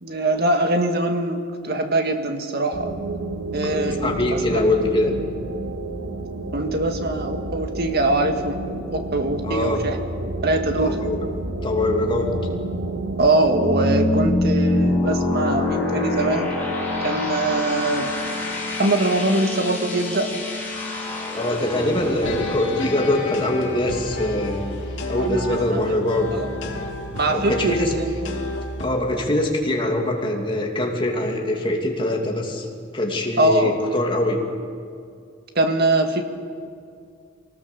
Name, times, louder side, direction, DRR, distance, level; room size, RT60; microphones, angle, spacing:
voice 1, 0.0-2.9 3.5-4.6 6.5-8.6 8.9-10.0 10.4-11.0 13.2-16.5 17.0-18.1 18.8-20.3 25.2-25.8 26.3-26.5 27.1-28.0 33.4-33.8 35.6-36.2, right 2 dB, 55° right, 5 dB, 1.8 m, -22 dB
sound 1, 2.7-13.3, right 2 dB, 90° right, 1.6 m, -30 dB
voice 2, 3.7-5.1 9.4-9.8 10.8-11.2 11.6-12.3 21.3-24.6 25.1-26.3 27.3-27.9 28.8-32.7 32.9-34.4, left 1 dB, 25° left, 1 dB, 2.7 m, -23 dB
sound 2, 12.2-24.8, left 2 dB, 10° left, 4.5 m, -26 dB
sound 3, 22.2-28.9, left 1 dB, 75° left, 2.9 m, -31 dB
24.5 x 19.0 x 7.0 m, 2.3 s
head